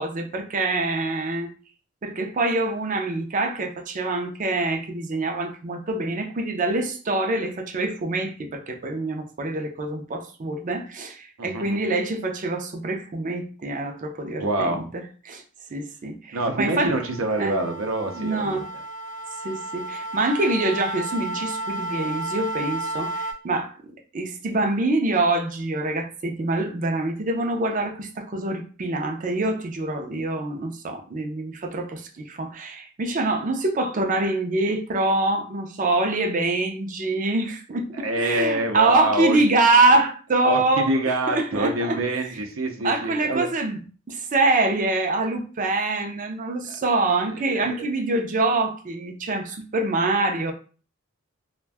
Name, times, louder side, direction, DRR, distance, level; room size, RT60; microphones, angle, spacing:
voice 1, 0.0-1.5 2.0-15.4 15.7-16.9 17.4-17.6 18.1-18.7 19.4-23.7 24.1-42.0 42.8-50.5, right 2 dB, 40° right, 0.5 m, -25 dB
voice 2, 11.4-11.8 14.4-14.9 16.3-18.6 37.9-39.4 40.4-43.5 46.7-46.8 47.2-47.9, right 1 dB, 90° right, 0.6 m, -26 dB
sound 1, 16.5-23.3, right 1 dB, 40° left, 0.6 m, -33 dB
2.5 x 2.2 x 3.3 m
head